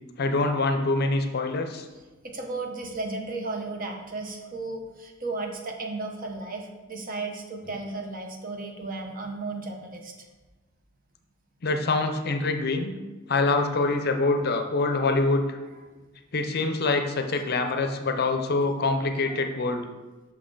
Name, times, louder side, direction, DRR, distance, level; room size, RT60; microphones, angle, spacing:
voice 1, 0.2-1.9 11.6-12.9 13.3-15.6 16.3-19.9, left 3 dB, 50° left, 6 dB, 0.6 m, -25 dB
voice 2, 2.2-10.3 19.3-19.4, right 3 dB, 45° right, 2 dB, 1.0 m, -34 dB
6.2 x 5.8 x 3.8 m, 1.2 s
head